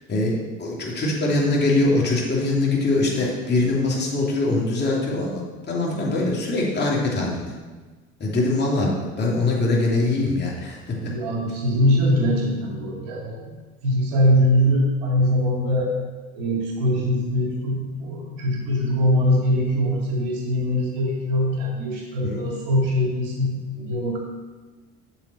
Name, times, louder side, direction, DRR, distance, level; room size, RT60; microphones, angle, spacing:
voice 1, 0.6-7.4 8.2-8.9 9.2-11.1 22.2-22.4, left 2 dB, 35° left, -3 dB, 2.8 m, -22 dB
voice 2, 11.0-13.4 13.8-15.9 16.3-24.2, left 1 dB, 90° right, -2 dB, 2.4 m, -22 dB
7.3 x 7.2 x 4.3 m, 1.3 s
supercardioid pair, 85°, 29 cm